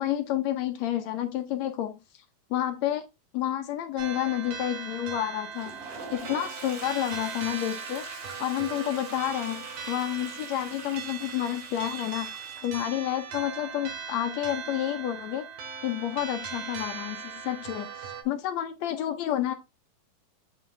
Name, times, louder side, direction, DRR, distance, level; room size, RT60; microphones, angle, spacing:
voice 1, 0.0-2.0 2.5-3.0 3.3-12.3 12.6-15.4 15.8-19.5, left 12 dB, 80° left, 1.6 m, -30 dB
sound 1, 4.0-18.2, right 6 dB, 85° right, 3.6 m, -39 dB
Toilet flush, 5.4-13.0, right 4 dB, 65° right, 4.6 m, -43 dB
8.4 x 6.1 x 3.1 m
omnidirectional pair, 4.1 m